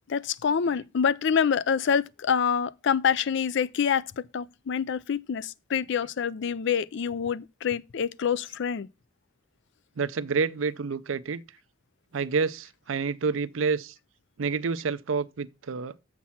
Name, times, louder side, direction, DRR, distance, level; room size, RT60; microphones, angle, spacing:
voice 1, 0.1-8.9, left 7 dB, 65° left, 0.4 m, -26 dB
voice 2, 10.0-11.4 12.1-13.9 14.4-15.9, right 5 dB, 80° right, 0.5 m, -28 dB
7.3 x 6.0 x 5.6 m
head